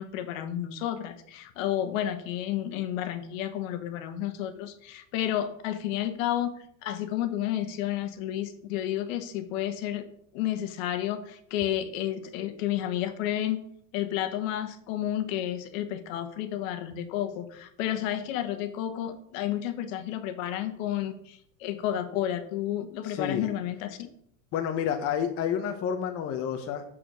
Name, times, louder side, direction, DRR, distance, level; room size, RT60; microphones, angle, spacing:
voice 1, 0.0-10.0 10.3-13.6 13.9-24.0, left 11 dB, 65° left, 9 dB, 1.4 m, -31 dB
voice 2, 23.0-23.5 24.5-26.8, left 8 dB, 35° left, 5 dB, 0.9 m, -29 dB
7.5 x 6.7 x 6.2 m, 0.69 s
supercardioid pair, 160°, 43 cm